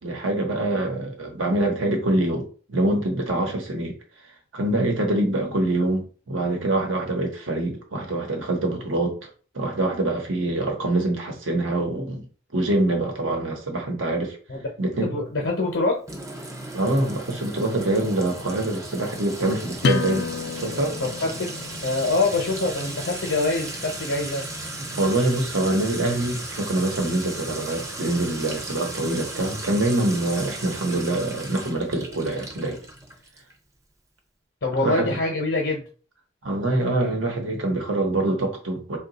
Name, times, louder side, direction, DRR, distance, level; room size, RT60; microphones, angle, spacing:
voice 1, 0.0-4.0 4.5-9.2 9.5-12.3 12.5-14.4 14.8-15.2 16.7-20.3 20.6-21.0 24.9-32.8 34.8-35.2 36.4-39.0, right 2 dB, 85° right, 1.0 m, -25 dB
voice 2, 15.0-16.0 21.0-21.5 21.8-24.5 34.6-35.8, left 2 dB, 75° left, 0.8 m, -25 dB
Sink (filling or washing) / Trickle dribble / Fill (with liquid), 16.1-33.5, right 2 dB, 15° right, 0.5 m, -36 dB
sound 1, 19.8-25.2, left 4 dB, 55° left, 0.3 m, -32 dB
2.8 x 2.3 x 4.0 m
head